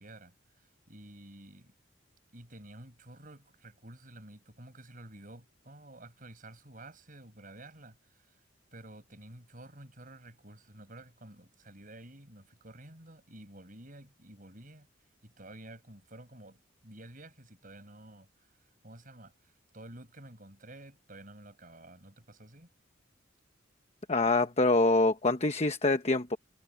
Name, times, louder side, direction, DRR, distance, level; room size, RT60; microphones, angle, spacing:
voice 1, 0.0-1.7 2.3-8.3 8.7-14.9 15.2-18.3 18.8-22.7, right 1 dB, 45° right, 7.4 m, -51 dB
voice 2, 24.1-26.4, left 2 dB, 35° left, 1.0 m, -25 dB
head